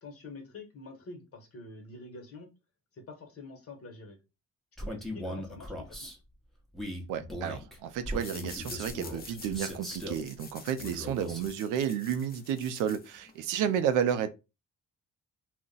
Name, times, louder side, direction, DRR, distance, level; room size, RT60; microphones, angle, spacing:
voice 1, 0.0-2.5 2.9-4.2 4.8-6.1 11.1-11.4 13.6-13.9, left 3 dB, 50° left, 1.1 m, -47 dB
Male speech man speaking, 4.8-6.2 6.7-10.2 10.8-11.5, equal, ahead, 0.8 m, -39 dB
voice 2, 7.1-14.3, right 9 dB, 90° right, 0.5 m, -31 dB
sound 1, 8.1-13.5, left 5 dB, 30° left, 0.6 m, -48 dB
2.4 x 2.1 x 3.8 m
cardioid pair, 90°, 30 cm